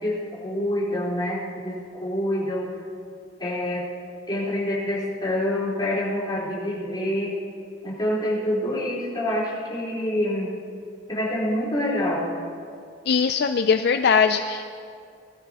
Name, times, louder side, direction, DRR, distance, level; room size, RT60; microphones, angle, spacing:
voice 1, 0.0-2.6 3.4-3.9 4.3-7.3 7.8-10.5 11.1-12.3, left 1 dB, 25° left, -8 dB, 4.2 m, -26 dB
voice 2, 13.1-14.6, left 6 dB, 60° left, 7 dB, 0.4 m, -20 dB
20.0 x 13.5 x 3.0 m, 2.3 s
head